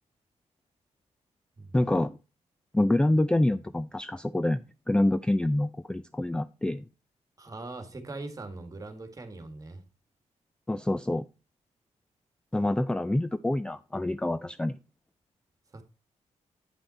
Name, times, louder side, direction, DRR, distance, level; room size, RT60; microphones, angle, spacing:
voice 1, 1.7-2.2 2.7-6.9 10.7-11.2 12.5-14.7, left 1 dB, 5° left, 0.4 m, -26 dB
voice 2, 7.4-9.8 15.7-15.8, right 2 dB, 30° right, 1.7 m, -41 dB
9.2 x 5.6 x 4.2 m
cardioid pair, 95°, 12 cm